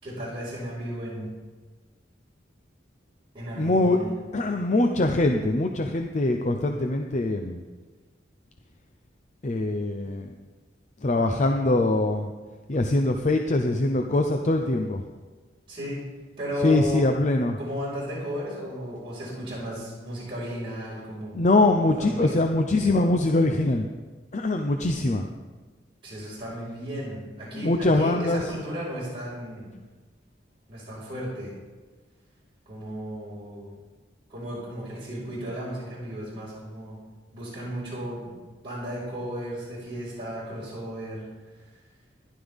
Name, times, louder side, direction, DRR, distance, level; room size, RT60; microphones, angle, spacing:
voice 1, 0.0-1.3 3.3-4.1 15.7-16.0 16.4-17.0 17.6-21.4 22.0-22.4 26.0-29.7 30.7-31.5 32.7-33.7 34.3-37.0 37.3-38.4 38.6-41.2, equal, 30° right, -9 dB, 4.9 m, -34 dB
voice 2, 3.6-4.0 4.3-7.6 9.4-10.3 11.0-12.3 12.7-15.0 16.6-17.6 21.3-23.9 24.3-25.3 27.5-28.5, left 2 dB, 40° left, 4 dB, 0.7 m, -23 dB
15.0 x 11.5 x 3.6 m, 1.3 s
head